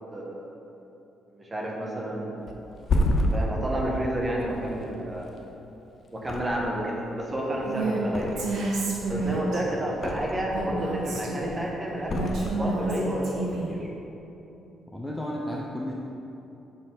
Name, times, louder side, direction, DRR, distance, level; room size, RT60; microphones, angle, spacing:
voice 1, 0.1-0.5 1.3-2.7 3.3-5.3 6.1-8.4 9.1-13.9, right 1 dB, 25° right, -2 dB, 1.1 m, -30 dB
Thump thud, 2.5-5.7 6.2-7.0 7.2-8.7 9.0-10.6 11.0-11.5 12.0-13.0 13.4-13.6, left 1 dB, 50° left, 0.6 m, -30 dB
Female speech woman speaking, 7.6-8.0 8.4-9.6 10.5-11.6 12.1-13.7, right 3 dB, 70° right, 1.1 m, -30 dB
voice 2, 14.9-15.9, equal, 5° left, -2 dB, 0.5 m, -33 dB
6.6 x 4.2 x 3.8 m, 3.0 s
cardioid pair, 90°, 0 cm